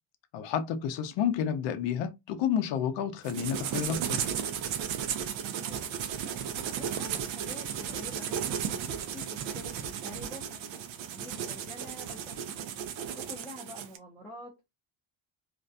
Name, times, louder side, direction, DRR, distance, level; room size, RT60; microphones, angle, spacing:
voice 1, 0.3-4.3, left 8 dB, 65° left, 0.5 m, -30 dB
sound 1, 3.2-14.0, right 8 dB, 85° right, 0.6 m, -35 dB
voice 2, 6.8-8.6 9.1-9.7 10.0-10.6 11.1-12.5 13.1-14.5, left 1 dB, 5° left, 0.5 m, -46 dB
2.5 x 2.1 x 2.5 m
cardioid pair, 170°, 46 cm